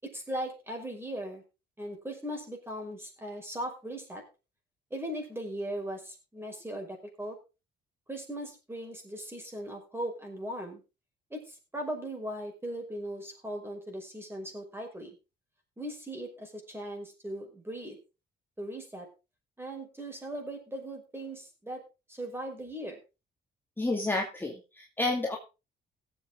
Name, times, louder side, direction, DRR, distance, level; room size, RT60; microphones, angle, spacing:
voice 1, 0.0-1.4 1.8-4.2 4.9-7.4 8.1-10.8 11.3-15.2 15.8-18.0 18.6-19.1 19.6-21.8 22.1-23.0, right 1 dB, 10° right, 3 dB, 5.8 m, -38 dB
voice 2, 23.8-25.4, left 2 dB, 10° left, 0 dB, 2.4 m, -30 dB
17.5 x 8.1 x 3.8 m, 0.29 s
cardioid pair, 90°, 20 cm